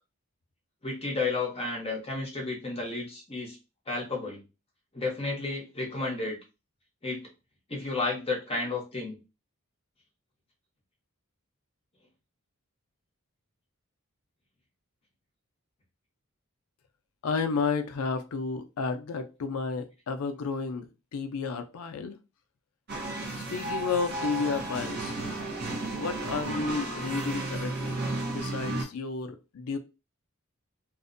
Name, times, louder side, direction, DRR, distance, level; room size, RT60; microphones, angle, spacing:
voice 1, 0.8-3.6 3.9-4.4 4.9-6.4 7.0-7.3 7.7-9.2, left 3 dB, 25° left, 0.9 m, -32 dB
voice 2, 17.2-22.2 23.3-25.2 25.9-28.0 28.3-29.8, left 4 dB, 70° left, 0.4 m, -32 dB
sound 1, 22.9-28.8, right 2 dB, 50° right, 0.7 m, -33 dB
2.5 x 2.1 x 2.5 m
head